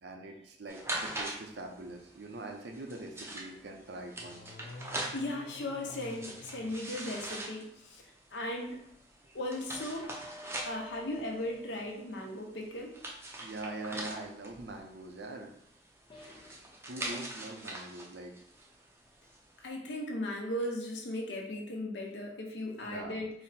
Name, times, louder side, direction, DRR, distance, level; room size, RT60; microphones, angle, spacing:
voice 1, 0.0-4.4 13.4-15.5 16.9-18.3 22.8-23.2, right 2 dB, 70° right, 3 dB, 0.6 m, -43 dB
sound 1, 0.7-19.6, right 1 dB, 15° right, 0.5 m, -43 dB
sound 2, 4.2-7.5, left 2 dB, 60° left, 0.4 m, -50 dB
voice 2, 5.1-8.0 8.3-8.8 9.3-10.0 10.6-13.0 19.6-23.3, left 1 dB, 85° left, 0 dB, 0.8 m, -37 dB
sound 3, 9.7-12.3 13.9-14.2 16.1-16.7, equal, 30° left, 0.7 m, -51 dB
4.1 x 2.1 x 4.1 m, 0.73 s
head